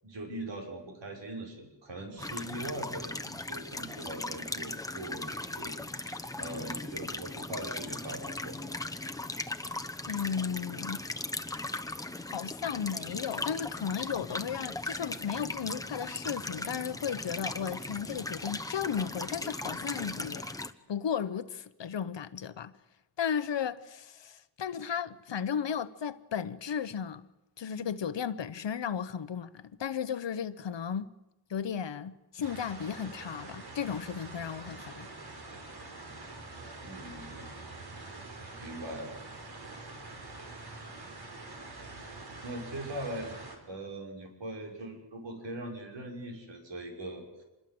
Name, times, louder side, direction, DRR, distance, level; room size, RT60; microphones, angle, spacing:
voice 1, 0.0-8.6 36.8-37.6 38.6-39.1 42.4-43.3 43.7-47.4, right 1 dB, 80° right, 6.3 m, -41 dB
sound 1, 2.2-20.7, left 2 dB, 10° left, 1.0 m, -38 dB
voice 2, 10.1-11.1 12.2-20.5 20.9-22.7 23.2-27.3 27.6-31.1 31.5-35.1, left 7 dB, 75° left, 1.1 m, -35 dB
sound 2, 32.4-43.6, right 2 dB, 60° right, 5.1 m, -45 dB
26.5 x 21.5 x 7.9 m
wide cardioid pair, 125°, 43 cm